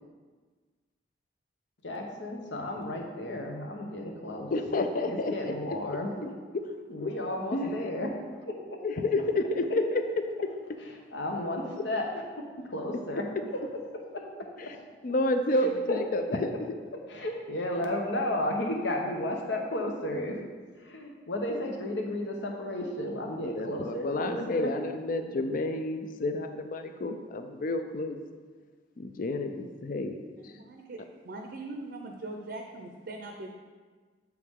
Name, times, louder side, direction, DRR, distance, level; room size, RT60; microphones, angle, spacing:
voice 1, 1.8-4.5 5.1-6.1 6.9-8.1 8.5-8.8 11.1-12.1 12.4-13.2 14.1-14.2 14.6-14.8 15.9-16.0 17.1-20.4 20.8-24.7, left 1 dB, 80° left, 1 dB, 1.0 m, -33 dB
voice 2, 4.5-5.8 6.2-6.7 7.0-7.1 7.5-7.9 8.8-10.8 11.8-11.9 14.6-14.8 15.0-16.8 23.4-28.2 29.0-30.2 30.4-30.6, left 2 dB, 50° left, 7 dB, 0.5 m, -30 dB
voice 3, 30.4-31.0 31.2-33.5, right 2 dB, 65° right, 2 dB, 0.6 m, -41 dB
7.6 x 4.7 x 3.6 m, 1.4 s
head